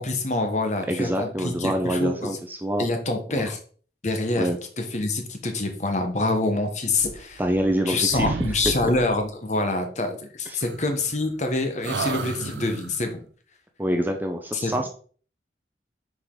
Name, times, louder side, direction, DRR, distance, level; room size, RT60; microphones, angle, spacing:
voice 1, 0.0-2.3 2.8-3.6 4.0-4.5 4.8-7.4 7.9-13.2 14.5-14.7, left 2 dB, 40° left, 5 dB, 1.0 m, -26 dB
voice 2, 0.9-2.9 3.3-3.5 4.4-4.6 7.4-8.5 10.5-10.6 13.8-14.9, equal, 10° right, 4 dB, 0.6 m, -26 dB
sound 1, 6.9-7.8 8.1-9.3 10.6-11.5 11.8-13.1, right 4 dB, 80° right, 0.5 m, -33 dB
6.3 x 5.0 x 3.7 m, 0.44 s
head